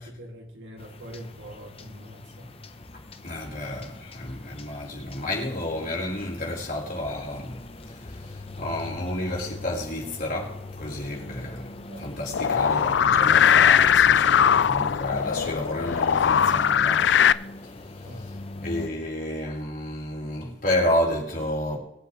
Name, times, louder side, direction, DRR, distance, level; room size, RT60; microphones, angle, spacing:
voice 1, 0.0-2.5 11.9-12.8 18.1-18.3, equal, 80° right, 2.6 m, -43 dB
sound 1, 0.8-18.9, left 2 dB, 30° left, 0.9 m, -42 dB
voice 2, 3.2-7.6 7.9-11.7 12.0-17.1 17.6-17.7 18.6-21.8, left 1 dB, 50° left, 4.7 m, -30 dB
sound 2, 12.3-17.3, left 8 dB, 70° left, 0.4 m, -20 dB
22.0 x 8.1 x 3.3 m
head